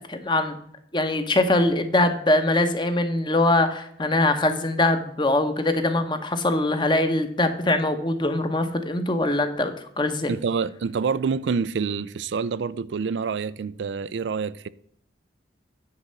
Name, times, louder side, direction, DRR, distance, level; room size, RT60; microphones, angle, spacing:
voice 1, 0.1-0.6 0.9-10.3, left 2 dB, 25° left, 0.9 m, -22 dB
voice 2, 10.3-14.7, right 5 dB, 75° right, 0.4 m, -27 dB
9.8 x 4.3 x 6.6 m
head